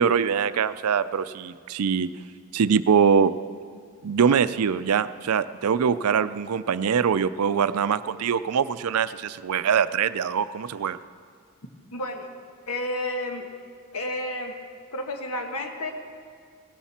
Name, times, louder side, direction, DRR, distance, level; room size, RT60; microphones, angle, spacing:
voice 1, 0.0-2.1 2.5-3.3 4.0-11.0, right 7 dB, 85° right, 14 dB, 0.4 m, -23 dB
voice 2, 11.9-12.3 12.7-13.5 13.9-14.5 14.9-15.9, left 1 dB, 85° left, 4 dB, 1.5 m, -31 dB
17.5 x 13.0 x 4.3 m, 2.1 s
head